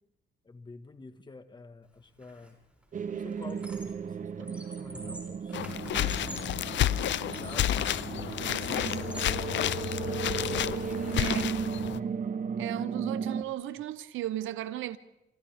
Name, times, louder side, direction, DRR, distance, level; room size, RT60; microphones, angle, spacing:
voice 1, 0.4-2.6 3.1-6.6 7.1-9.2 9.9-13.5, left 3 dB, 25° left, 1.8 m, -50 dB
Squeak, 2.2-2.5 2.8-4.1 4.4-6.6 7.1-8.1 8.5-9.4 9.9-11.5, right 1 dB, 5° right, 7.1 m, -46 dB
sound 1, 2.9-13.4, right 6 dB, 40° right, 1.0 m, -35 dB
sound 2, 5.5-12.0, left 12 dB, 70° left, 0.7 m, -30 dB
voice 2, 8.4-9.0 11.2-11.5 12.6-15.0, right 13 dB, 85° right, 0.9 m, -36 dB
29.5 x 26.5 x 3.6 m
cardioid pair, 90°, 20 cm